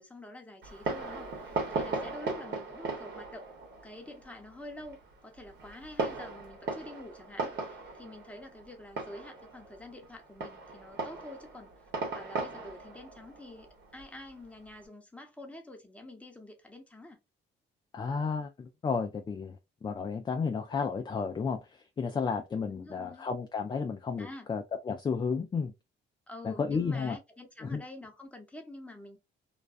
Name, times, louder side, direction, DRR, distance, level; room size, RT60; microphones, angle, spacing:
voice 1, 0.0-3.5 3.8-13.7 13.9-17.2 22.7-23.3 24.2-24.5 26.3-29.2, left 1 dB, 5° left, 0.8 m, -47 dB
Fireworks, 0.6-14.8, right 3 dB, 60° right, 1.0 m, -38 dB
voice 2, 17.9-25.7 26.4-27.2 27.6-27.8, left 5 dB, 25° left, 0.3 m, -32 dB
2.3 x 2.2 x 2.4 m
cardioid pair, 90°, 20 cm